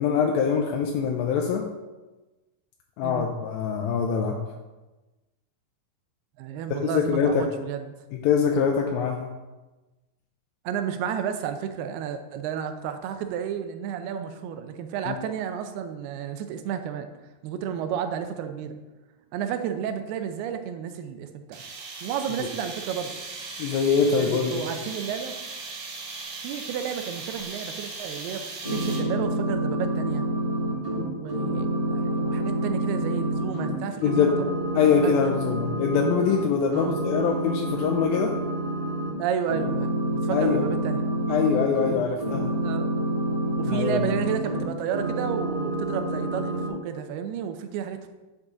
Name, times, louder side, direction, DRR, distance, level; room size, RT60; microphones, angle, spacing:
voice 1, 0.0-1.6 3.0-4.4 6.8-7.4 8.2-9.3 15.1-15.2 23.6-24.6 34.0-34.3 34.8-38.3 40.3-40.6 41.3-42.5 43.7-44.1, left 6 dB, 80° left, 2 dB, 2.3 m, -23 dB
voice 2, 6.4-7.9 10.7-17.1 17.4-18.8 19.3-21.6 22.0-23.1 24.0-25.3 26.4-30.3 31.2-34.5 35.0-35.6 36.7-37.0 39.2-41.1 42.6-42.9 43.6-48.1, right 8 dB, 90° right, 8 dB, 2.7 m, -32 dB
sound 1, 21.5-29.2, right 3 dB, 65° right, 3.1 m, -38 dB
sound 2, 28.6-33.7 34.0-36.4 36.7-39.1 39.5-44.6 44.9-46.7, right 1 dB, 20° right, 1.0 m, -28 dB
9.6 x 6.0 x 3.9 m, 1.1 s
omnidirectional pair, 4.4 m